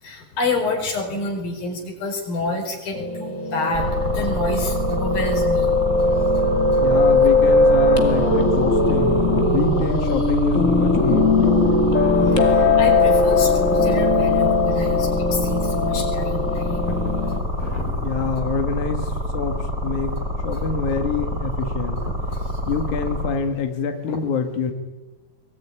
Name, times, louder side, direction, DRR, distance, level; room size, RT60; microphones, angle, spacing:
voice 1, 0.0-7.1 12.2-18.3 20.5-20.7 22.0-22.6 24.1-24.2, left 3 dB, 85° left, 3 dB, 6.7 m, -29 dB
Piano, 2.9-17.4, left 2 dB, 25° left, 2.3 m, -19 dB
sound 1, 3.7-23.3, left 1 dB, 15° right, 5.8 m, -26 dB
voice 2, 6.8-11.9 18.0-20.2 20.4-22.0 22.7-24.7, left 5 dB, 60° left, 5 dB, 3.0 m, -26 dB
23.5 x 22.0 x 10.0 m, 1.2 s
omnidirectional pair, 4.0 m